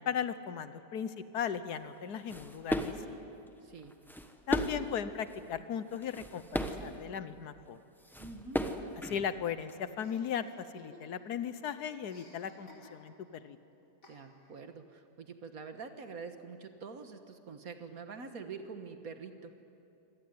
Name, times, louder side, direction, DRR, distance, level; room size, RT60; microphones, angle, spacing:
voice 1, 0.0-3.2 4.5-7.8 9.0-13.1 13.4-13.6, left 8 dB, 70° left, 12 dB, 1.4 m, -37 dB
sound 1, 2.0-3.1 3.8-4.9 5.3-5.5 5.9-6.9 7.8-7.9 8.0-9.7, equal, ahead, 0.9 m, -36 dB
voice 2, 3.6-4.0 8.2-8.6 14.1-19.5, right 5 dB, 55° right, 7 dB, 1.8 m, -46 dB
Chuckle chortle, 10.0-11.4 11.6-13.3 14.0-14.6, left 2 dB, 50° left, 5.2 m, -58 dB
25.5 x 18.5 x 9.5 m, 2.7 s
omnidirectional pair, 1.8 m